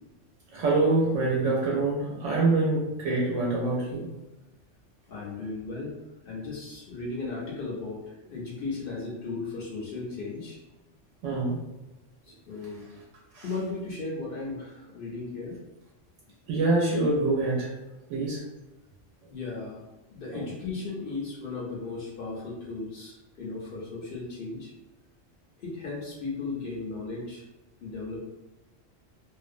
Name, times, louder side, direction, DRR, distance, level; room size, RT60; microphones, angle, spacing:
voice 1, 0.5-4.1 11.2-11.6 13.3-13.4 16.5-17.7 18.1-18.4 20.3-20.4, right 2 dB, 80° right, -4 dB, 0.9 m, -25 dB
voice 2, 5.1-5.9 6.2-10.6 12.2-12.8 13.4-15.6 19.3-19.8 20.1-24.7 25.6-27.4 27.8-28.2, left 3 dB, 60° left, -4 dB, 0.7 m, -36 dB
2.6 x 2.0 x 2.5 m, 1.0 s
omnidirectional pair, 1.3 m